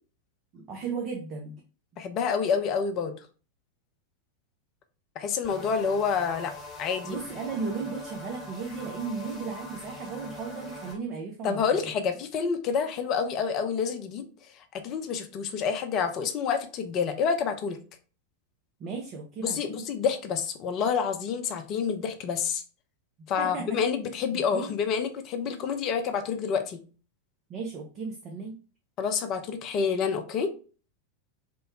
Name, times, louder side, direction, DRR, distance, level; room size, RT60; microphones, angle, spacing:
voice 1, 0.5-1.6 7.0-11.8 18.8-19.8 23.4-23.8 24.3-24.7 27.5-28.6, right 5 dB, 35° right, 2 dB, 0.5 m, -35 dB
voice 2, 2.0-3.1 5.2-6.5 6.8-7.2 11.4-14.3 14.7-17.8 19.4-22.6 23.3-26.8 29.0-30.5, left 6 dB, 35° left, 7 dB, 0.5 m, -28 dB
sound 1, 5.4-11.0, left 2 dB, 10° left, 1.1 m, -43 dB
2.9 x 2.1 x 3.5 m, 0.37 s
figure-of-eight pair, 90°, 0 cm